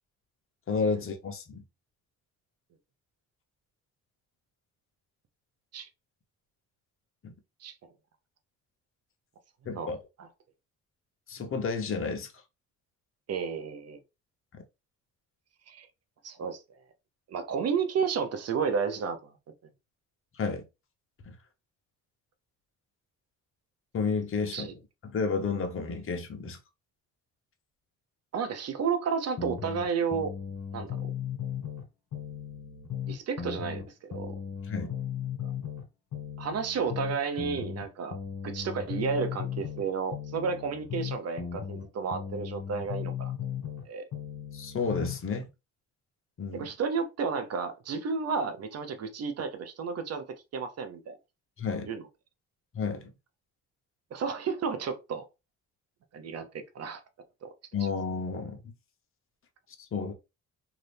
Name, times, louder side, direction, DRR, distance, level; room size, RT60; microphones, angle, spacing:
voice 1, 0.7-1.6 7.2-7.3 9.6-10.0 11.3-12.3 20.3-20.6 21.3-21.4 23.9-24.7 25.0-26.6 34.7-34.9 44.5-45.5 46.4-46.7 51.6-51.9 52.7-53.1 57.7-58.7 59.8-60.1, left 5 dB, 45° left, 0.9 m, -31 dB
voice 2, 13.3-14.0 15.7-15.9 16.2-16.6 17.3-19.4 24.5-24.7 28.3-30.3 30.7-31.1 33.1-34.4 36.4-38.2 38.4-43.3 43.8-44.1 46.5-50.2 50.5-51.2 51.8-52.0 54.1-55.2 56.1-57.0 57.4-57.5, right 6 dB, 55° right, 0.8 m, -32 dB
sound 1, 29.4-31.8 32.1-35.8 36.1-39.8 40.1-43.8 44.1-45.2, left 8 dB, 70° left, 1.4 m, -36 dB
2.8 x 2.5 x 3.4 m
cardioid pair, 90°, 30 cm